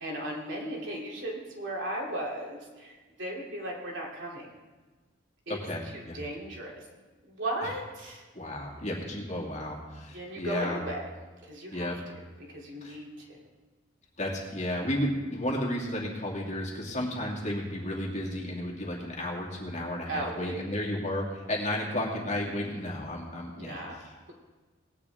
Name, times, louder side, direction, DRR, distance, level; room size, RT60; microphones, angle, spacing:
voice 1, 0.0-4.5 5.5-5.6 5.9-6.9 7.3-8.3 10.1-11.1 11.4-13.4 20.1-20.6 23.6-24.0, right 1 dB, 65° right, -2 dB, 3.0 m, -36 dB
voice 2, 5.5-6.2 8.3-10.8 11.7-12.0 12.8-13.0 14.2-24.1, left 1 dB, 35° left, -3 dB, 2.5 m, -33 dB
19.0 x 10.0 x 3.6 m, 1.3 s
head